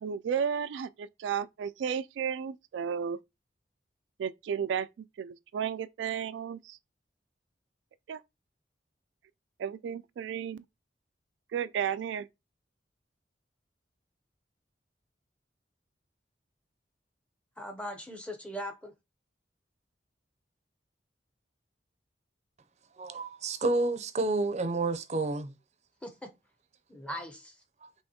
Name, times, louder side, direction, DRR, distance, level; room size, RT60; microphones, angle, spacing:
voice 1, 0.0-3.2 4.2-4.9 5.2-6.8 8.1-8.2 9.6-10.6 11.5-12.3, right 7 dB, 90° right, 0.3 m, -33 dB
voice 2, 17.6-18.9 26.0-26.3 26.9-27.5, equal, 5° left, 0.7 m, -40 dB
voice 3, 23.0-25.5 27.8-27.9, right 2 dB, 40° right, 0.5 m, -30 dB
5.5 x 3.0 x 2.8 m
head